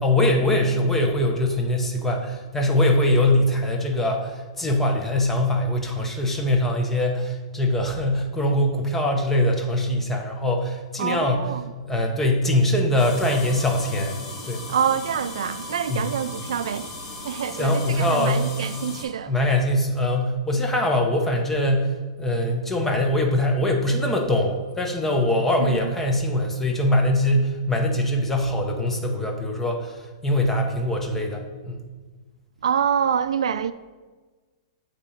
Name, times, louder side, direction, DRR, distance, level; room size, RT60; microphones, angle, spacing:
voice 1, 0.0-11.4 11.9-14.2 14.4-14.6 15.9-16.1 17.5-18.5 19.3-21.9 22.2-30.0 30.2-31.8, left 1 dB, 10° left, 0.8 m, -22 dB
voice 2, 11.0-11.7 14.7-16.9 17.2-19.3 25.6-25.8 32.6-33.7, right 8 dB, 85° right, 0.3 m, -26 dB
sound 1, 13.0-19.0, left 2 dB, 30° left, 1.6 m, -37 dB
8.2 x 3.0 x 4.9 m
hypercardioid pair, 150°, 3 cm